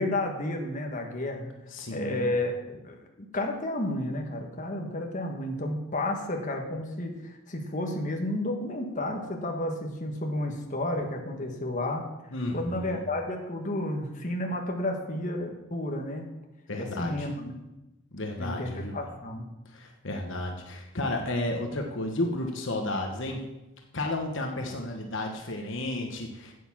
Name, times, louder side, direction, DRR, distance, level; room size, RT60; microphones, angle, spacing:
voice 1, 0.0-1.5 1.9-12.0 12.5-16.3 16.8-17.5 18.4-19.4, left 1 dB, 35° left, 2 dB, 1.5 m, -31 dB
voice 2, 1.7-2.3 12.3-13.0 16.7-17.3 18.1-19.0 19.6-23.4 23.9-26.5, left 1 dB, 60° left, 2 dB, 1.3 m, -32 dB
9.2 x 8.4 x 7.4 m, 0.99 s
head